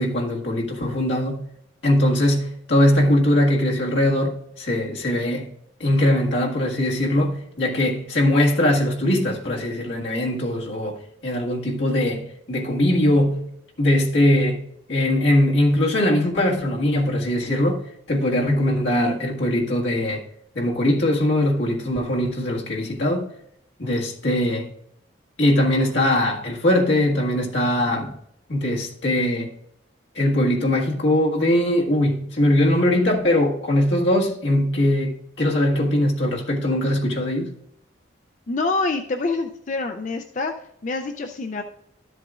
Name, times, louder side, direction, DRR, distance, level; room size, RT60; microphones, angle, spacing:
voice 1, 0.0-1.4 1.8-5.5 5.8-11.0 11.2-14.6 14.9-17.8 18.1-20.2 20.5-23.3 23.8-24.7 25.4-28.2 28.5-29.5 30.1-37.5, left 1 dB, 70° left, 1.7 m, -21 dB
voice 2, 38.5-41.6, left 3 dB, 40° left, 0.4 m, -26 dB
12.5 x 7.8 x 2.4 m
head